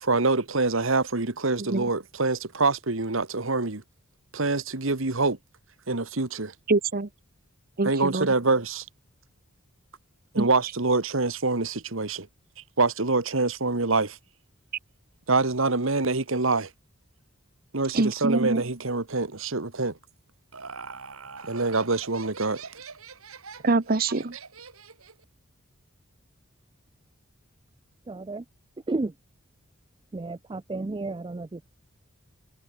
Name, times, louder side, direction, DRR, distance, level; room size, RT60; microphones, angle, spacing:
voice 1, 0.0-3.8 4.3-5.4 5.9-6.5 7.8-8.9 10.3-12.3 12.8-14.2 15.3-16.7 17.7-20.0 21.4-22.7, right 3 dB, 65° right, 1.7 m, -25 dB
voice 2, 1.6-1.9 6.7-7.1 7.8-8.3 10.4-10.5 17.9-18.6 23.6-24.3, right 3 dB, 45° right, 0.9 m, -24 dB
Laughter, 20.1-25.2, right 5 dB, 90° right, 4.8 m, -43 dB
voice 3, 28.1-28.4 28.9-29.1 30.1-31.6, right 2 dB, 25° right, 0.4 m, -32 dB
head